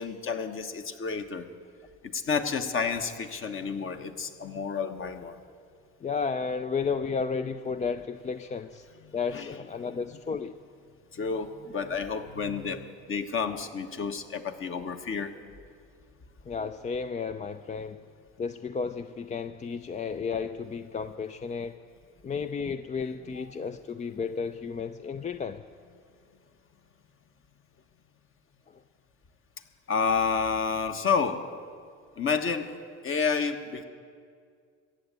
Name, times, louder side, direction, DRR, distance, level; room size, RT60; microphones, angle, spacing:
voice 1, 0.0-1.5 2.0-5.4 9.0-9.5 11.1-15.4 29.9-31.5 32.2-32.7 33.0-33.8, left 5 dB, 40° left, 7 dB, 1.2 m, -30 dB
voice 2, 6.0-8.9 9.1-10.6 16.5-18.0 18.4-21.8 22.2-25.6 28.7-28.8, left 5 dB, 20° left, 10 dB, 0.4 m, -33 dB
14.5 x 8.1 x 8.8 m, 2.2 s
hypercardioid pair, 70°, 34 cm